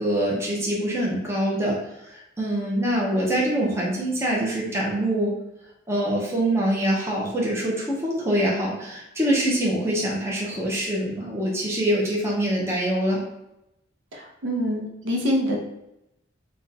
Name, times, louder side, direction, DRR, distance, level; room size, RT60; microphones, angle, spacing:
voice 1, 0.0-1.8 2.0-5.3 5.9-13.2, right 1 dB, 15° right, -4 dB, 0.6 m, -24 dB
voice 2, 14.1-15.6, equal, 65° right, 0 dB, 0.6 m, -25 dB
2.5 x 2.2 x 3.9 m, 0.87 s
head